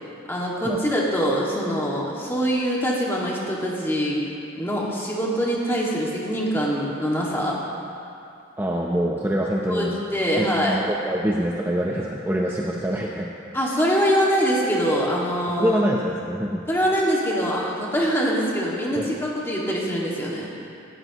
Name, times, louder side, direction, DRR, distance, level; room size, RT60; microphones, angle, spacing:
voice 1, 0.3-4.3 4.5-7.6 9.6-10.8 13.5-15.8 16.7-20.5, equal, 10° left, -4 dB, 2.0 m, -24 dB
voice 2, 8.6-9.9 10.4-13.3 15.6-16.6 19.0-19.1, equal, 10° right, -2 dB, 0.6 m, -25 dB
17.5 x 16.0 x 3.0 m, 2.6 s
head